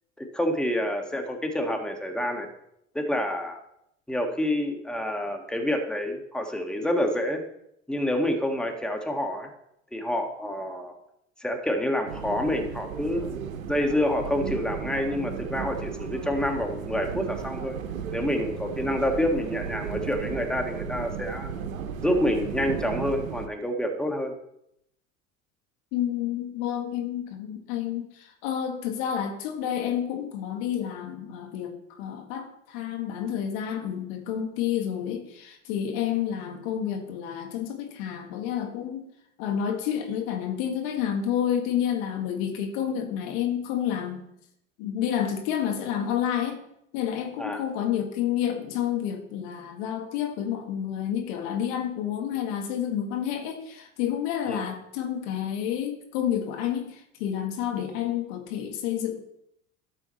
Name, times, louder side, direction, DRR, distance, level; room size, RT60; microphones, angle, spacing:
voice 1, 0.2-2.5 3.0-3.6 4.1-7.4 7.9-9.5 9.9-11.0 11.4-17.8 18.1-21.5 22.0-24.3 47.4-47.6 54.5-54.6, left 1 dB, ahead, 3 dB, 1.7 m, -28 dB
sound 1, 12.1-23.5, right 7 dB, 90° right, 0.9 m, -35 dB
voice 2, 25.9-39.1 39.4-44.3 44.8-46.6 46.9-59.2, left 9 dB, 65° left, 4 dB, 1.8 m, -29 dB
12.5 x 7.2 x 4.2 m, 0.77 s
hypercardioid pair, 70°, 39 cm